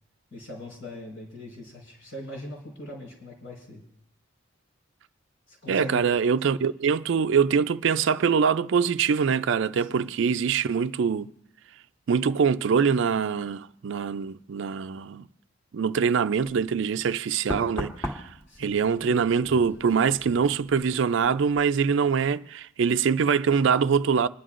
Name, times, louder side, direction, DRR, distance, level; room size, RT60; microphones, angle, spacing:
voice 1, 0.3-3.8 5.5-6.0 9.9-10.1 18.5-18.8, left 1 dB, 80° left, 4.5 m, -41 dB
voice 2, 5.7-11.3 12.1-15.3 15.7-18.3 18.6-24.3, right 6 dB, 60° right, 0.4 m, -24 dB
Knock, 16.4-16.6 17.5-21.0 21.2-21.6, equal, 10° left, 1.2 m, -37 dB
28.0 x 11.0 x 2.5 m
head